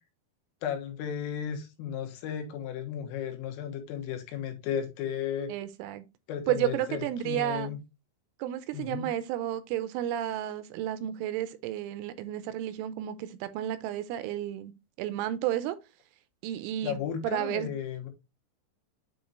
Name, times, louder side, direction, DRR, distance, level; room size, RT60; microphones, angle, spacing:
voice 1, 0.6-5.5 6.3-7.0 7.3-7.8 8.7-9.1 16.8-18.1, left 8 dB, 85° left, 3.9 m, -34 dB
voice 2, 5.5-6.0 6.5-7.7 8.4-14.7 15.0-15.8 16.4-17.7, right 12 dB, 80° right, 3.0 m, -32 dB
9.3 x 4.0 x 3.1 m
omnidirectional pair, 5.8 m